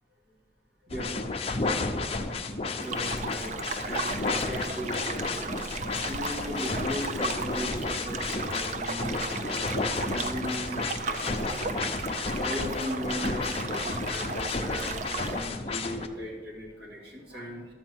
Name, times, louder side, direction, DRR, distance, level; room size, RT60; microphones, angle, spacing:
voice 1, 0.8-1.2 2.8-3.5 3.8-5.6 6.1-17.7, equal, 60° right, -1 dB, 2.3 m, -38 dB
sound 1, 0.9-16.1, left 3 dB, 35° left, 0.7 m, -32 dB
sound 2, 2.8-15.5, right 4 dB, 40° right, 0.5 m, -36 dB
12.5 x 4.4 x 7.9 m, 1.5 s
head